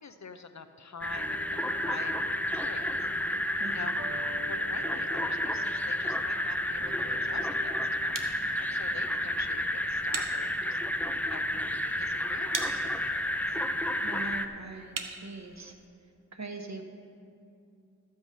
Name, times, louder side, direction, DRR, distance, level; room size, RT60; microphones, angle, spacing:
voice 1, 0.0-2.9 3.7-3.9 4.4-10.8 11.2-13.6, left 5 dB, 60° left, 8 dB, 0.7 m, -46 dB
sound 1, 1.0-14.5, left 1 dB, 5° left, 0.5 m, -31 dB
sound 2, 1.2-11.8 12.0-12.1, equal, 40° right, 1.5 m, -49 dB
voice 2, 3.6-4.0 14.0-14.9 15.2-15.7 16.3-16.8, right 3 dB, 60° right, 4 dB, 1.1 m, -41 dB
sound 3, 6.1-15.9, right 4 dB, 85° right, 0.9 m, -44 dB
12.5 x 8.0 x 5.3 m, 2.5 s
wide cardioid pair, 70°, 32 cm